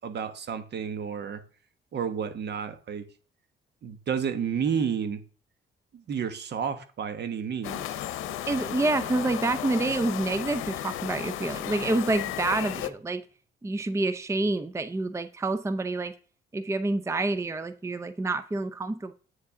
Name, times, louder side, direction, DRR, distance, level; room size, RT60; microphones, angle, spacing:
voice 1, 0.0-1.4 1.9-3.0 3.8-5.2 5.9-8.0, right 7 dB, 60° right, 1.3 m, -31 dB
sound 1, 7.6-12.9, left 12 dB, 90° left, 0.7 m, -34 dB
voice 2, 8.5-13.2 13.6-16.1 16.5-19.1, right 2 dB, 15° right, 0.6 m, -28 dB
8.7 x 7.2 x 3.7 m
cardioid pair, 90°, 20 cm